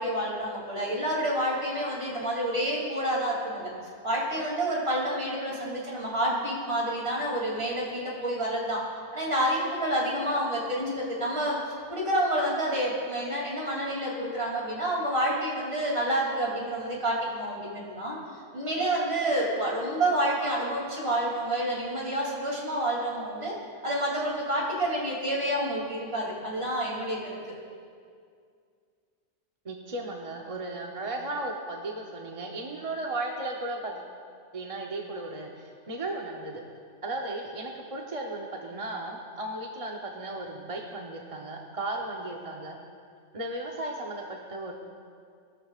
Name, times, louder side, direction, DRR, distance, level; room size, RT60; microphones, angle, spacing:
voice 1, 0.0-3.7 4.0-8.8 9.1-11.6 11.9-18.2 18.5-23.5 23.8-27.4, right 1 dB, 55° right, -4 dB, 3.1 m, -28 dB
voice 2, 29.6-34.0 34.5-36.6 37.0-42.8 43.3-44.7, right 2 dB, 30° right, 0 dB, 0.9 m, -35 dB
20.5 x 13.0 x 2.4 m, 2.2 s
omnidirectional pair, 1.3 m